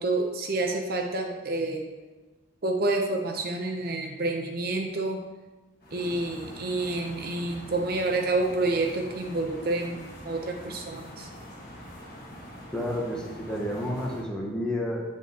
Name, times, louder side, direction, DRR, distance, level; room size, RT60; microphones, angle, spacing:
voice 1, 0.0-1.9 2.6-5.2 5.9-10.0 10.2-11.3, right 2 dB, 45° right, 3 dB, 0.6 m, -28 dB
sound 1, 5.8-14.2, equal, 50° left, 1.4 m, -44 dB
voice 2, 12.7-15.1, left 1 dB, 5° left, -3 dB, 1.1 m, -30 dB
7.6 x 7.2 x 2.8 m, 1.2 s
head